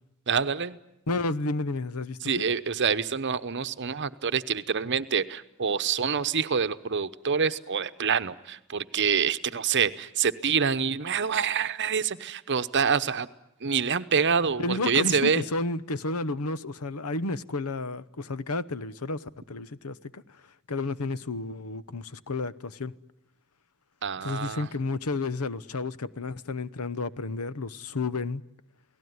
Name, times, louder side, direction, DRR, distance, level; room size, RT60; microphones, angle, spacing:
voice 1, 0.3-0.8 2.2-13.3 13.6-15.4 24.0-24.7, right 6 dB, 55° right, 0.9 m, -26 dB
voice 2, 1.1-2.4 14.6-20.2 20.7-22.9 24.2-28.4, left 3 dB, 80° left, 0.9 m, -31 dB
28.5 x 18.5 x 9.5 m
head